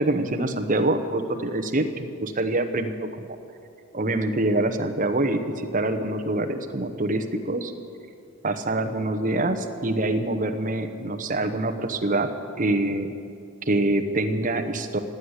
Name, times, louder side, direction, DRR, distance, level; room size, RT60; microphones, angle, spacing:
voice 1, 0.0-3.3 3.9-7.7 8.4-12.3 12.6-13.1 13.7-15.0, right 2 dB, 35° right, 7 dB, 0.9 m, -25 dB
16.0 x 8.1 x 9.7 m, 2.5 s
head